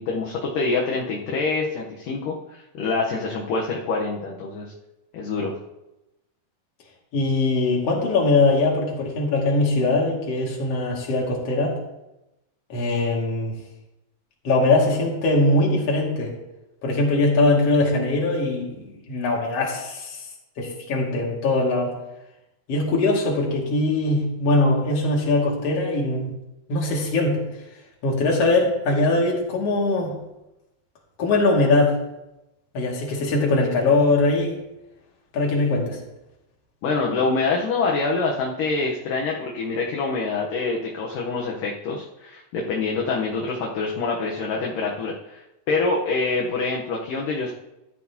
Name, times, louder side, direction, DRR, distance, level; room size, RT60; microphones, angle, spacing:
voice 1, 0.0-4.7 5.1-5.5 36.8-47.5, left 3 dB, 65° left, -1 dB, 2.4 m, -26 dB
voice 2, 7.1-11.8 12.7-13.6 14.4-16.3 16.8-20.2 20.6-21.9 22.7-26.3 26.7-27.4 28.0-30.1 31.2-31.9 32.7-34.6 35.3-36.0, left 2 dB, 45° left, -2 dB, 2.9 m, -21 dB
14.0 x 12.0 x 2.9 m, 0.92 s
omnidirectional pair, 4.6 m